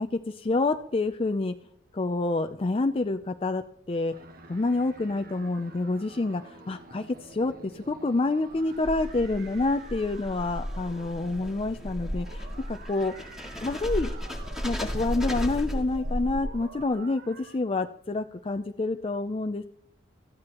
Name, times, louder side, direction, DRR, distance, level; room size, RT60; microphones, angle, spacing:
voice 1, 0.0-1.5 1.9-4.1 4.5-13.4 13.6-14.1 14.6-19.6, left 2 dB, 30° left, 8 dB, 0.4 m, -28 dB
sound 1, 4.1-17.6, right 3 dB, 45° right, 1.2 m, -48 dB
sound 2, 8.5-16.8, equal, ahead, 1.9 m, -34 dB
18.5 x 15.0 x 3.0 m, 0.69 s
head